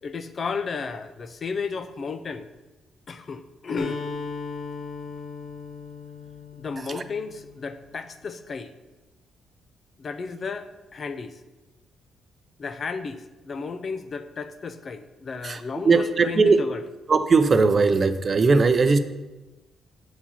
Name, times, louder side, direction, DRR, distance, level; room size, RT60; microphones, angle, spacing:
voice 1, 0.0-2.5 3.1-4.0 6.6-8.7 10.0-11.4 12.6-16.8, left 5 dB, 45° left, 11 dB, 0.6 m, -33 dB
Acoustic guitar, 3.8-7.6, left 4 dB, 80° left, 1.8 m, -37 dB
voice 2, 15.4-16.6 17.1-19.0, right 4 dB, 35° right, 10 dB, 0.6 m, -19 dB
8.4 x 4.7 x 5.7 m, 1.1 s
cardioid pair, 90°, 0 cm